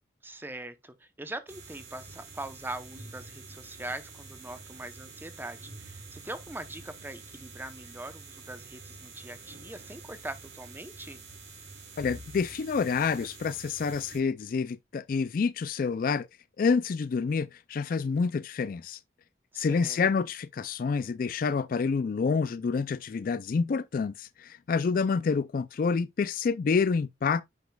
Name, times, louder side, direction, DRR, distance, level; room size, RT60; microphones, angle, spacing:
voice 1, 0.2-11.2 19.5-20.0, right 2 dB, 10° right, 0.7 m, -42 dB
sound 1, 1.5-14.2, right 3 dB, 85° right, 4.2 m, -47 dB
voice 2, 12.0-16.3 16.6-19.0 19.6-27.4, left 5 dB, 50° left, 0.3 m, -28 dB
9.3 x 5.1 x 2.3 m
head